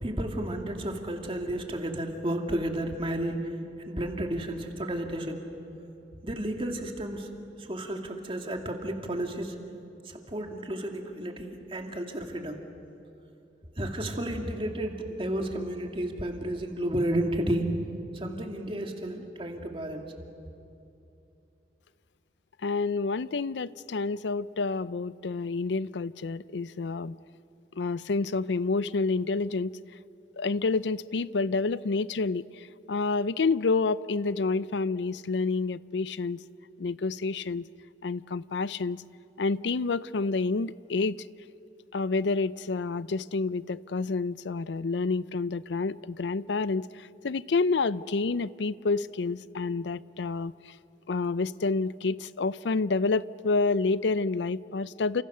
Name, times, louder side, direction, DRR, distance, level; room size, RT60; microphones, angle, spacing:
voice 1, 0.0-3.4 3.9-5.4 6.2-7.3 7.6-9.5 10.1-12.6 13.8-17.6 18.1-20.0, right 1 dB, 30° right, 2.5 m, -32 dB
voice 2, 22.6-27.2 27.8-29.8 30.3-36.4 36.8-37.7 38.0-39.0 39.4-41.3 41.9-50.8 51.1-55.2, left 3 dB, 90° left, 0.5 m, -29 dB
30.0 x 27.0 x 6.8 m
head